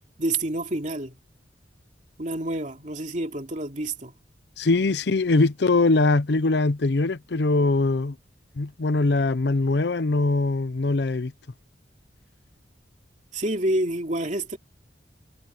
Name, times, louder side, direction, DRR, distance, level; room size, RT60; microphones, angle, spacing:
voice 1, 0.2-1.2 2.2-4.1 13.3-14.6, right 1 dB, 40° right, 2.7 m, -28 dB
voice 2, 4.6-8.1 8.6-11.3, left 3 dB, 65° left, 0.6 m, -22 dB
head